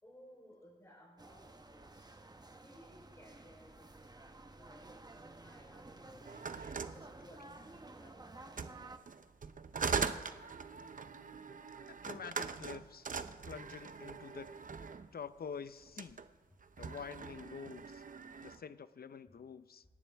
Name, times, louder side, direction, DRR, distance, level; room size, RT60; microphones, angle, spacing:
voice 1, 0.0-1.4 1.7-2.1 2.6-6.4 6.9-8.7, equal, 15° left, -5 dB, 3.8 m, -60 dB
sound 1, 1.2-9.0, right 2 dB, 25° right, 0.9 m, -53 dB
sound 2, 6.2-7.8 8.5-15.1 15.8-16.3 16.6-18.6, right 5 dB, 50° right, 0.7 m, -41 dB
voice 2, 11.9-13.1 13.4-14.5 15.1-16.2 16.8-18.0 18.4-19.8, left 6 dB, 60° left, 13 dB, 0.6 m, -47 dB
28.0 x 10.5 x 3.5 m, 1.5 s
wide cardioid pair, 90°, 18 cm